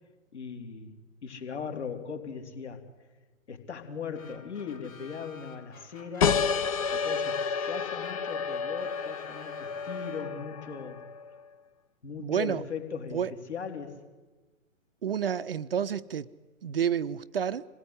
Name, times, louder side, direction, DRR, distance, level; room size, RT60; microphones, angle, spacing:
voice 1, 0.3-2.8 3.5-6.4 6.9-7.4 7.7-11.0 12.0-13.2 13.5-14.0, left 6 dB, 55° left, 3.4 m, -39 dB
sound 1, 4.1-10.7, left 4 dB, 75° left, 2.2 m, -51 dB
sound 2, 6.2-11.4, left 6 dB, 25° left, 0.7 m, -30 dB
voice 2, 12.2-12.6 13.1-13.3 15.0-16.3 16.6-17.6, right 8 dB, 45° right, 0.7 m, -29 dB
26.0 x 18.5 x 9.8 m
figure-of-eight pair, 125°, 40 cm